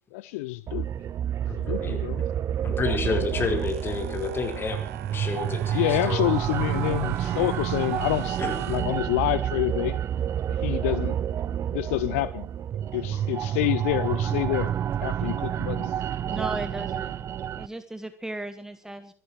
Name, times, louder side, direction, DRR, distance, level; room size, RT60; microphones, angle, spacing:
voice 1, 0.1-0.9 1.6-2.3 5.7-10.0 10.6-11.2 11.7-12.5 12.9-14.7 15.0-15.9, left 18 dB, 60° left, 17 dB, 0.7 m, -27 dB
sound 1, 0.7-17.7, right 10 dB, 35° right, 0.8 m, -29 dB
voice 2, 1.5-2.2 2.6-4.8 5.1-6.2 8.4-8.5, left 4 dB, 25° left, 5 dB, 4.9 m, -30 dB
sound 2, 3.0-9.5, right 14 dB, 65° right, 1.5 m, -39 dB
voice 3, 16.3-17.3 17.5-19.1, right 1 dB, 5° right, 10 dB, 1.3 m, -36 dB
25.0 x 12.0 x 4.6 m, 0.39 s
figure-of-eight pair, 75°, 8 cm